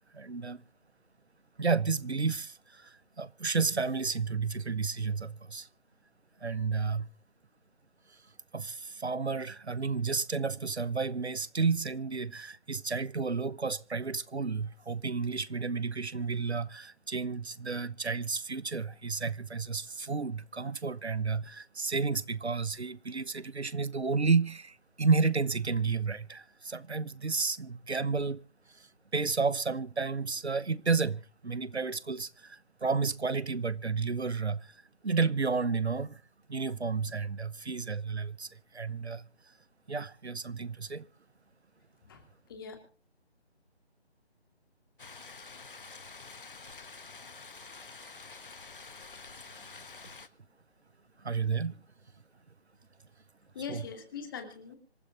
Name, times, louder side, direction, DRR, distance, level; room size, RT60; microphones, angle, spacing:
voice 1, 0.1-0.6 1.6-5.7 6.4-7.1 8.5-28.4 28.7-34.8 35.0-36.2 36.5-39.2 39.9-41.1 51.2-51.8 53.7-53.8, right 4 dB, 80° right, 0.9 m, -31 dB
voice 2, 42.0-42.8 53.5-54.8, left 6 dB, 20° left, 2.4 m, -42 dB
sound 1, 45.0-50.3, left 4 dB, 50° left, 1.3 m, -48 dB
26.0 x 14.0 x 2.5 m
figure-of-eight pair, 155°, 33 cm